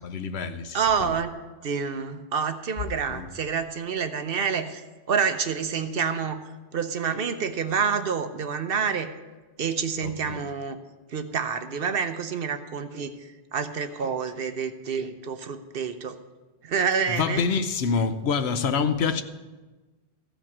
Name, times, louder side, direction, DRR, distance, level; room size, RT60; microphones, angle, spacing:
voice 1, 0.0-1.1 3.1-3.3 10.0-10.4 17.1-19.2, left 5 dB, 70° left, 0.9 m, -27 dB
voice 2, 0.7-1.4 1.6-4.8 5.1-6.4 6.7-9.1 9.6-10.8 11.1-16.2 16.6-17.4, right 6 dB, 60° right, 0.9 m, -28 dB
14.5 x 5.1 x 7.2 m
omnidirectional pair, 1.1 m